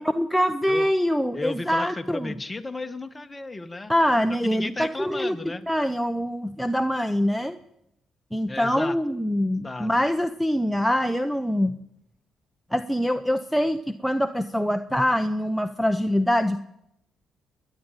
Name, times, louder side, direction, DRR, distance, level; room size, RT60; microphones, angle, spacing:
voice 1, 0.0-2.4 3.9-5.4 5.7-7.6 8.3-11.7 12.7-16.6, equal, ahead, 7 dB, 0.8 m, -24 dB
voice 2, 1.3-3.9 4.4-5.6 8.5-9.0 9.6-9.9, left 2 dB, 20° left, 8 dB, 1.5 m, -34 dB
28.0 x 10.5 x 9.1 m, 0.85 s
cardioid pair, 90°, 0 cm